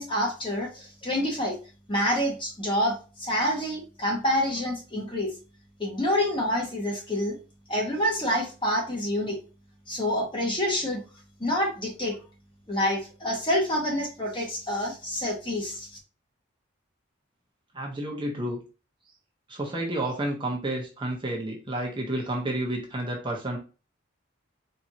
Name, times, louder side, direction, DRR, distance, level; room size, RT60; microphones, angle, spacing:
voice 1, 0.0-1.6 1.9-5.3 5.8-7.4 7.7-9.4 9.9-11.0 11.4-12.2 12.7-15.9, equal, 25° left, 0 dB, 1.2 m, -27 dB
voice 2, 17.7-18.6 19.5-23.6, right 1 dB, 25° right, -1 dB, 0.9 m, -30 dB
4.4 x 3.4 x 2.8 m, 0.33 s
head